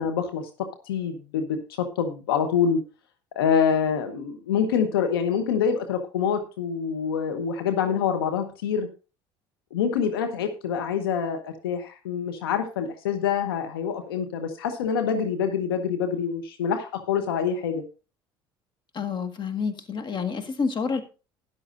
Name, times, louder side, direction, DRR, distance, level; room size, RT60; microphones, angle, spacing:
voice 1, 0.0-2.8 3.3-8.9 9.7-17.8, left 7 dB, 85° left, 6 dB, 1.0 m, -26 dB
voice 2, 18.9-21.0, left 5 dB, 40° left, 8 dB, 1.7 m, -28 dB
13.0 x 10.5 x 2.6 m, 0.32 s
hypercardioid pair, 65°, 12 cm